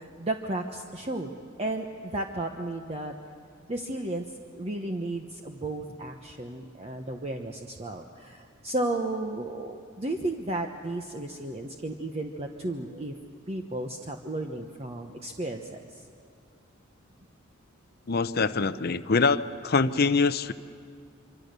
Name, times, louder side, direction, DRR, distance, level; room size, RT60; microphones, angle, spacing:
voice 1, 0.0-1.3 1.6-3.1 3.7-4.3 4.6-13.1 13.5-16.0, right 2 dB, 30° right, 3 dB, 1.1 m, -33 dB
voice 2, 18.1-20.5, left 4 dB, 50° left, 12 dB, 0.7 m, -24 dB
25.5 x 25.0 x 6.8 m, 2.3 s
head